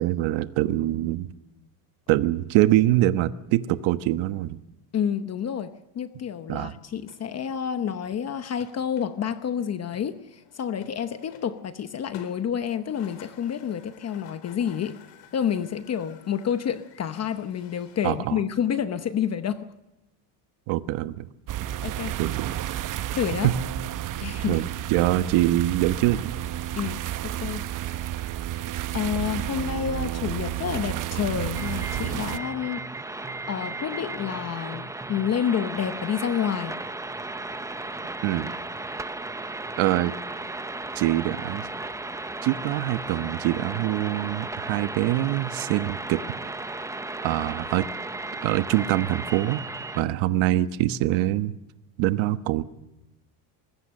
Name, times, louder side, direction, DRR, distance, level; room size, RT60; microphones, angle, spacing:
voice 1, 0.0-1.3 2.1-4.6 6.5-6.7 18.0-18.4 20.7-21.3 22.2-22.5 23.4-23.5 24.5-26.3 38.2-38.5 39.8-40.1 40.9-41.7 42.4-46.2 47.2-47.9 48.4-49.6 49.9-51.6 52.0-52.6, right 15 dB, 65° right, 12 dB, 1.3 m, -24 dB
voice 2, 4.9-15.0 15.3-19.7 21.8-22.2 23.1-23.5 24.2-24.6 26.7-27.6 28.9-32.8 33.4-36.8, left 8 dB, 30° left, 11 dB, 0.9 m, -29 dB
sound 1, 7.0-18.1, left 7 dB, 60° left, 3.8 m, -51 dB
sound 2, 21.5-32.4, right 12 dB, 40° right, 0.9 m, -31 dB
sound 3, 31.5-50.0, right 2 dB, 5° right, 0.8 m, -35 dB
25.0 x 21.0 x 6.6 m, 0.95 s
cardioid pair, 150°, 50 cm